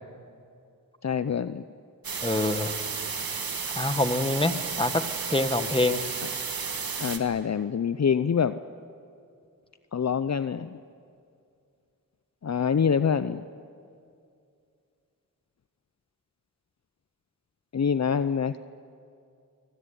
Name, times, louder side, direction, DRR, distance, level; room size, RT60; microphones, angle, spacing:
voice 1, 1.0-1.6 7.0-8.6 9.9-10.8 12.4-13.4 17.7-18.6, left 7 dB, 50° left, 13 dB, 0.6 m, -25 dB
sound 1, 2.0-7.2, right 5 dB, 90° right, 1.8 m, -32 dB
voice 2, 2.2-2.8 3.7-5.0 5.3-6.0, left 2 dB, 15° left, 10 dB, 1.5 m, -25 dB
24.5 x 18.0 x 9.8 m, 2.4 s
cardioid pair, 45°, 35 cm